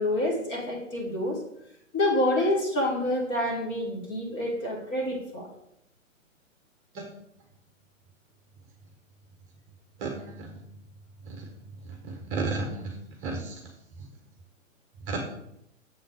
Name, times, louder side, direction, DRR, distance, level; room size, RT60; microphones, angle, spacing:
voice 1, 0.0-1.4 1.9-5.5, left 1 dB, 25° left, -2 dB, 2.1 m, -27 dB
voice 2, 10.0-10.5 11.3-11.4 12.0-12.9 13.2-13.5 15.1-15.2, right 3 dB, 25° right, 2 dB, 1.2 m, -32 dB
7.3 x 3.8 x 6.5 m, 0.78 s
figure-of-eight pair, 120°, 40 cm